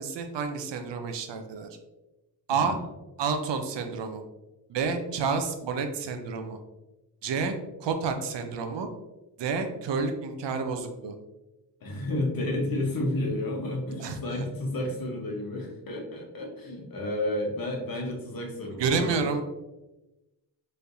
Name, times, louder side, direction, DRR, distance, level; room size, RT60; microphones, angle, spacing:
voice 1, 0.0-1.7 2.5-2.8 3.2-4.2 4.7-6.6 7.2-8.9 9.4-11.1 14.0-14.2 18.8-19.4, right 5 dB, 70° right, 6 dB, 0.6 m, -29 dB
voice 2, 2.5-2.8 11.8-19.2, left 1 dB, 50° left, 0 dB, 1.0 m, -31 dB
4.5 x 3.3 x 2.7 m, 1.0 s
wide cardioid pair, 155°, 44 cm